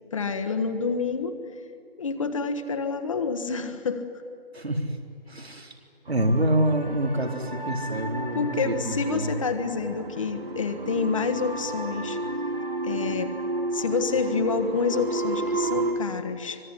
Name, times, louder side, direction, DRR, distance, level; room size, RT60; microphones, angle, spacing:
voice 1, 0.1-1.3 2.0-4.0 8.3-12.2 12.8-13.3 13.7-16.6, left 5 dB, 30° left, 8 dB, 1.4 m, -28 dB
voice 2, 5.3-5.7 6.1-9.3, right 1 dB, 90° right, 3 dB, 4.1 m, -26 dB
sound 1, 6.1-15.9, right 2 dB, 65° right, 3.4 m, -32 dB
25.0 x 20.0 x 10.0 m, 2.4 s
figure-of-eight pair, 155°, 30 cm